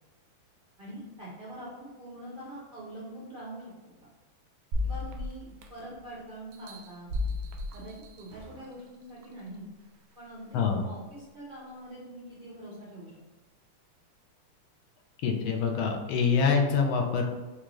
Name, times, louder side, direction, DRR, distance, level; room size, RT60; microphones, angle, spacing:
voice 1, 0.8-3.7 4.8-7.1 7.7-9.7 10.2-13.1, right 1 dB, 65° right, -7 dB, 0.5 m, -44 dB
sound 1, 4.7-6.0 6.5-8.6 9.2-9.3, left 2 dB, 90° right, 0.8 m, -34 dB
voice 2, 15.2-17.3, left 5 dB, 75° left, 2 dB, 1.4 m, -25 dB
4.6 x 2.6 x 3.0 m, 1.2 s
omnidirectional pair, 2.4 m